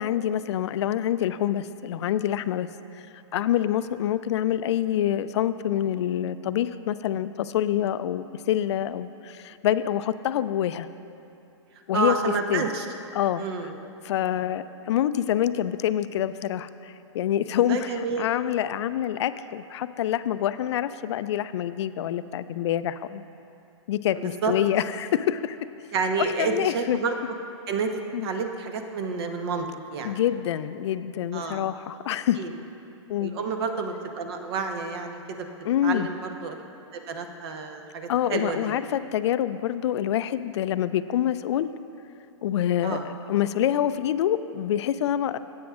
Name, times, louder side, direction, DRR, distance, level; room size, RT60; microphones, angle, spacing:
voice 1, 0.0-2.7 2.9-3.1 3.3-10.9 11.9-12.7 13.1-13.7 14.0-23.2 23.9-25.6 26.2-27.0 28.1-28.3 30.0-32.4 33.1-33.4 35.7-36.1 38.1-41.7 42.4-45.4, left 11 dB, 65° left, 13 dB, 0.4 m, -26 dB
voice 2, 11.9-12.8 13.4-13.8 17.7-18.3 24.4-24.5 25.9-27.1 27.7-27.9 28.2-29.7 29.9-30.2 31.3-31.6 32.4-32.5 33.2-35.5 35.8-36.2 36.4-36.5 36.9-38.7 42.8-43.0, right 5 dB, 55° right, 5 dB, 0.9 m, -29 dB
15.5 x 8.4 x 2.4 m, 2.7 s
hypercardioid pair, 130°, 16 cm